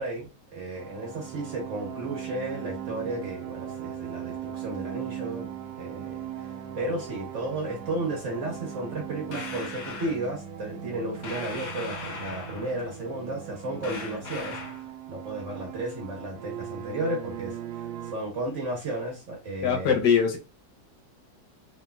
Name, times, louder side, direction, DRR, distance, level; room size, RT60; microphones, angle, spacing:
voice 1, 0.0-5.5 5.8-14.8 15.1-20.0, right 2 dB, 50° right, 1.1 m, -34 dB
sound 1, 0.7-18.2, right 9 dB, 70° right, 1.0 m, -39 dB
sound 2, 9.3-10.2 11.2-12.8 13.8-14.9, left 4 dB, 60° left, 1.1 m, -38 dB
voice 2, 19.6-20.4, left 7 dB, 80° left, 1.4 m, -22 dB
3.1 x 3.1 x 2.3 m
omnidirectional pair, 1.9 m